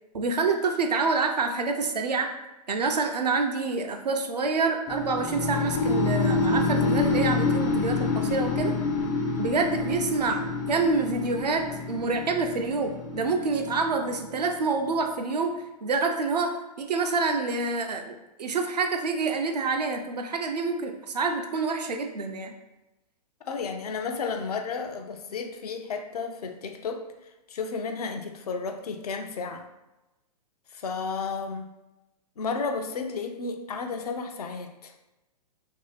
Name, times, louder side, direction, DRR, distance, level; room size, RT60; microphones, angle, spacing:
voice 1, 0.1-2.3 2.7-8.7 9.4-22.5, right 4 dB, 75° right, 5 dB, 0.6 m, -27 dB
sound 1, 4.9-14.8, left 3 dB, 20° left, 0.4 m, -27 dB
voice 2, 23.4-27.0 27.5-29.6 30.7-31.7 32.4-34.9, left 4 dB, 65° left, 5 dB, 0.6 m, -32 dB
3.1 x 2.8 x 3.9 m, 1.0 s
figure-of-eight pair, 115°, 21 cm